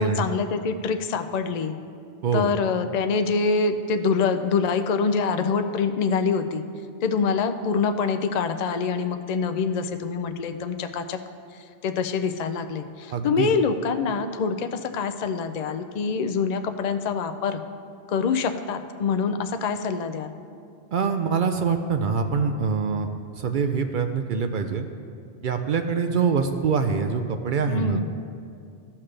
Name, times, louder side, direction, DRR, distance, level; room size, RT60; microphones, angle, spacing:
voice 1, 0.0-1.8 2.3-6.6 7.0-11.2 11.5-17.6 18.1-20.4 27.7-28.1, left 5 dB, 50° left, 7 dB, 0.5 m, -25 dB
voice 2, 13.1-13.5 20.9-23.1 23.4-24.9 25.4-28.0, right 5 dB, 60° right, 6 dB, 0.6 m, -24 dB
15.5 x 5.8 x 3.3 m, 2.4 s
omnidirectional pair, 1.1 m